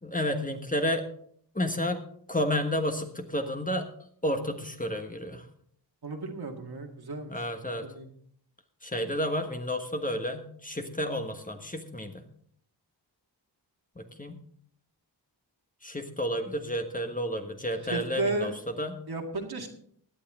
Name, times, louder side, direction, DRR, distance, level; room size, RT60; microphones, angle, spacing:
voice 1, 0.0-1.0 1.5-3.9 4.2-5.5 7.3-7.9 8.8-12.3 13.9-14.4 15.8-19.0, equal, 20° left, 5 dB, 1.4 m, -31 dB
voice 2, 6.0-7.4 7.8-8.1 17.9-18.5 19.1-19.7, right 2 dB, 60° right, 3 dB, 2.0 m, -33 dB
17.0 x 9.9 x 3.7 m, 0.62 s
wide cardioid pair, 75°, 43 cm